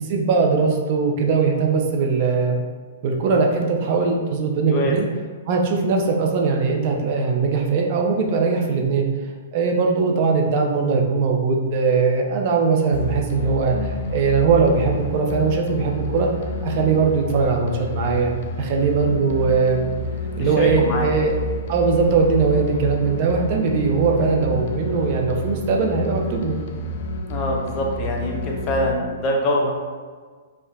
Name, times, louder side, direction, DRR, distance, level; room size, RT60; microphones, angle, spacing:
voice 1, 0.0-2.6 3.0-5.1 5.5-9.1 9.5-16.3 16.6-18.3 18.6-19.8 20.4-21.3 21.7-26.6, right 4 dB, 45° right, 1 dB, 0.6 m, -20 dB
sound 1, 12.9-28.9, left 2 dB, 55° left, 0.4 m, -29 dB
voice 2, 20.4-21.1 27.3-29.7, left 1 dB, 30° left, -1 dB, 0.8 m, -24 dB
5.7 x 2.5 x 2.3 m, 1.5 s
hypercardioid pair, 130°, 0 cm